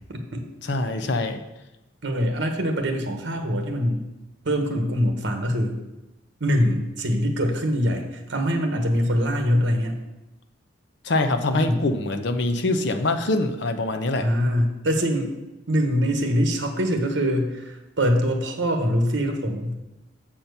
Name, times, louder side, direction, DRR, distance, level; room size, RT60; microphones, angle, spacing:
voice 1, 0.1-0.4 2.0-4.0 4.4-5.8 6.4-10.0 11.5-11.8 14.2-15.3 15.7-19.8, equal, 65° right, 4 dB, 1.2 m, -23 dB
voice 2, 0.7-1.4 11.0-14.3, left 2 dB, 60° left, 8 dB, 0.7 m, -24 dB
7.3 x 4.3 x 6.7 m, 1.0 s
head